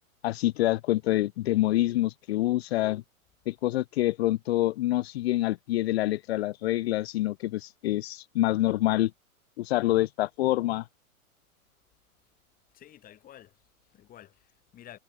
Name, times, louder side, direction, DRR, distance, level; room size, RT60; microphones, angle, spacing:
voice 1, 0.2-3.0 3.5-9.1 9.6-10.9, left 16 dB, 45° left, 1.5 m, -26 dB
voice 2, 12.7-15.0, left 12 dB, 20° left, 4.5 m, -51 dB
hypercardioid pair, 150°, 43 cm